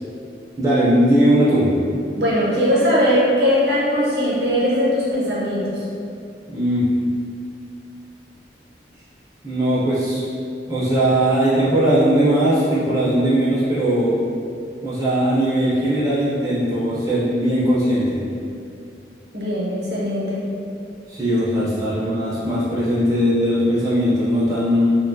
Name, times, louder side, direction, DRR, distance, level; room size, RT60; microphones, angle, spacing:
voice 1, 0.6-1.7 6.5-6.9 9.4-10.2 10.7-14.2 14.8-18.2 21.1-24.9, right 1 dB, 20° right, -9 dB, 0.4 m, -19 dB
voice 2, 2.1-5.8 19.3-20.4 21.7-21.8, equal, 70° right, -7 dB, 0.7 m, -20 dB
2.4 x 2.2 x 2.5 m, 2.4 s
head